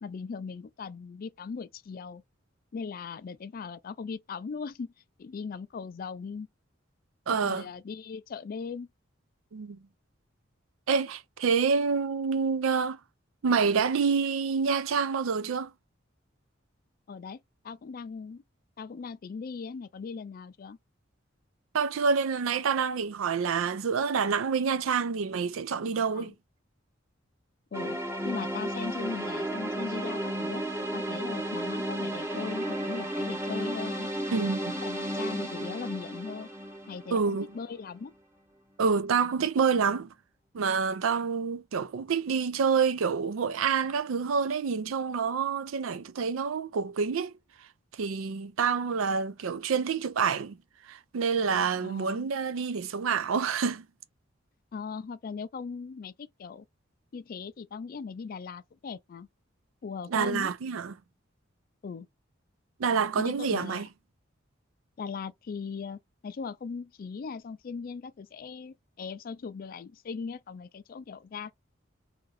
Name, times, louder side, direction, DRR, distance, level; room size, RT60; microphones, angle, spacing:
voice 1, 0.0-2.2 2.7-4.9 5.2-6.5 7.3-8.9 17.1-17.4 17.6-18.4 18.8-20.8 25.9-26.3 27.7-28.0 28.2-30.6 30.9-34.1 34.8-36.5 36.9-38.1 51.8-52.3 54.7-56.7 57.1-59.3 59.8-60.5 61.8-62.1 63.2-63.9 65.0-71.5, left 5 dB, 45° left, 0.3 m, -39 dB
voice 2, 7.3-7.6 9.5-9.8 10.9-13.0 13.4-15.7 21.7-26.3 34.3-34.8 37.1-37.5 38.8-40.1 40.5-47.4 48.0-50.6 50.9-53.9 60.1-60.9 62.8-63.9, right 5 dB, 90° right, 0.4 m, -27 dB
sound 1, 27.7-37.7, right 1 dB, 15° right, 0.7 m, -33 dB
2.8 x 2.6 x 3.9 m
head